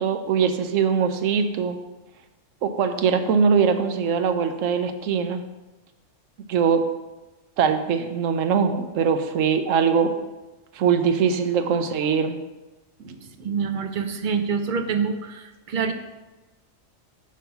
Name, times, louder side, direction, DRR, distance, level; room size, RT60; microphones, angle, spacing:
voice 1, 0.0-1.8 2.6-5.4 6.5-6.9 7.6-10.2 10.7-12.4 13.0-13.5, right 6 dB, 85° right, 8 dB, 1.0 m, -22 dB
voice 2, 13.4-15.9, right 6 dB, 60° right, 8 dB, 0.5 m, -26 dB
9.0 x 3.2 x 5.8 m, 1.1 s
omnidirectional pair, 1.3 m